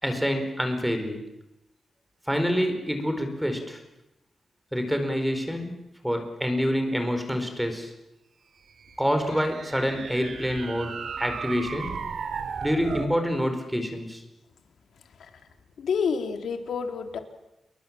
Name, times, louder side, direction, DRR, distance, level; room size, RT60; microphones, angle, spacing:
voice 1, 0.0-1.2 2.3-3.8 4.7-5.7 6.0-7.9 9.0-12.0 12.6-14.2, equal, 5° right, 6 dB, 4.6 m, -27 dB
sound 1, 8.8-13.2, right 6 dB, 65° right, 2.7 m, -36 dB
voice 2, 15.8-17.2, left 6 dB, 80° left, 5 dB, 3.4 m, -29 dB
29.0 x 22.5 x 7.6 m, 0.92 s
wide cardioid pair, 135°, 0 cm